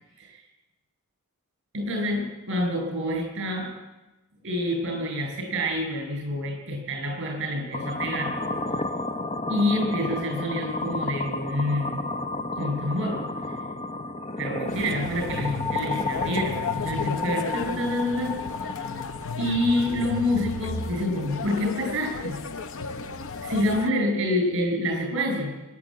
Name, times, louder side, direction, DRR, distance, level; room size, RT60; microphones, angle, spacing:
voice 1, 1.7-3.7 4.4-8.3 9.5-12.1 12.6-13.2 14.4-18.3 18.6-18.7 19.4-22.4 23.4-25.5, left 1 dB, 60° right, 2 dB, 7.7 m, -27 dB
sound 1, 7.7-21.7, left 3 dB, 30° left, 0.9 m, -32 dB
sound 2, 14.7-23.9, left 4 dB, 65° left, 0.8 m, -35 dB
24.5 x 12.0 x 9.0 m, 1.1 s
head